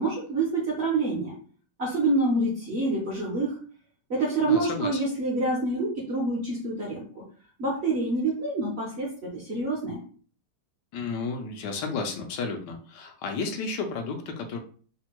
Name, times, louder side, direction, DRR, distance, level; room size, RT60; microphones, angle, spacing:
voice 1, 0.0-1.3 1.8-3.6 4.1-7.2 7.6-10.0, right 2 dB, 50° right, -4 dB, 0.8 m, -27 dB
voice 2, 4.4-5.0 10.9-14.6, left 4 dB, 75° left, 4 dB, 1.2 m, -32 dB
3.3 x 2.1 x 3.0 m, 0.43 s
omnidirectional pair, 1.9 m